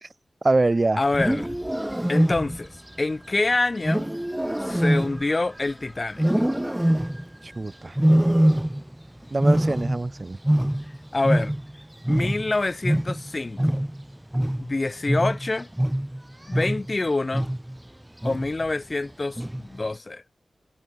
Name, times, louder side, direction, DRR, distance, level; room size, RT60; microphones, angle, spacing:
voice 1, 0.4-1.0 7.4-8.0 9.3-10.4, right 2 dB, 40° right, 1.0 m, -24 dB
voice 2, 1.0-1.6 2.1-2.7 3.0-4.1 4.6-6.2 11.1-11.5 12.1-13.8 14.6-15.7 16.5-17.5 18.2-20.2, left 2 dB, 40° left, 0.4 m, -26 dB
Wild animals, 1.0-2.8 3.8-5.7 6.2-7.4 8.0-9.0 9.3-11.8 12.0-17.0 17.3-17.8 18.2-18.6 19.4-19.8, right 1 dB, 10° right, 1.4 m, -23 dB
cardioid pair, 55°, 0 cm